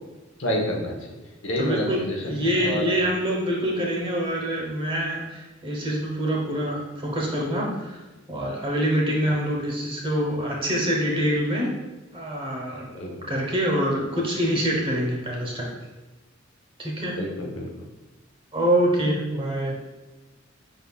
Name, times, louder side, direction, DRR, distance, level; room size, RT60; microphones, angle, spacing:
voice 1, 0.4-1.1 1.4-2.9 12.9-13.1 17.2-17.7, left 1 dB, 70° left, 0 dB, 0.9 m, -28 dB
voice 2, 1.6-8.0 8.3-11.7 12.1-15.7 16.8-17.2 18.5-19.7, equal, 25° right, -2 dB, 0.9 m, -25 dB
5.2 x 3.7 x 2.3 m, 1.1 s
head